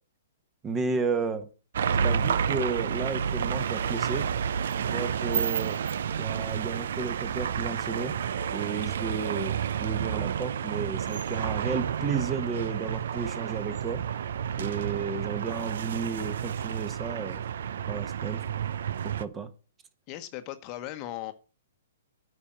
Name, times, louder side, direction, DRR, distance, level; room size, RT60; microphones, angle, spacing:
voice 1, 0.6-1.5 2.0-4.3 4.8-5.8 6.2-8.2 8.5-14.0 14.6-17.4 17.9-18.4 19.0-19.5, right 4 dB, 20° right, 1.3 m, -33 dB
sound 1, 1.7-19.3, right 8 dB, 70° right, 0.6 m, -30 dB
voice 2, 20.1-21.3, left 14 dB, 35° left, 1.0 m, -37 dB
9.8 x 5.3 x 7.6 m
hypercardioid pair, 135°, 0 cm